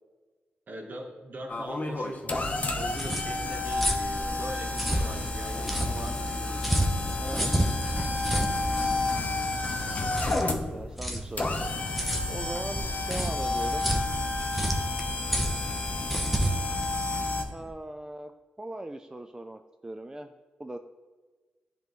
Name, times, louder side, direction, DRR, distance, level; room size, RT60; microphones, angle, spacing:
voice 1, 0.7-2.3 2.7-6.8, right 1 dB, 50° right, 3 dB, 1.1 m, -41 dB
sound 1, 1.5-17.4, left 2 dB, 40° left, 0.9 m, -31 dB
sound 2, 2.5-17.7, equal, ahead, 0.9 m, -31 dB
voice 2, 10.5-11.7 12.3-13.9 17.4-18.3 18.6-20.3 20.6-20.8, right 2 dB, 20° right, 6 dB, 0.4 m, -39 dB
10.5 x 3.4 x 3.1 m, 1.4 s
cardioid pair, 60°, 4 cm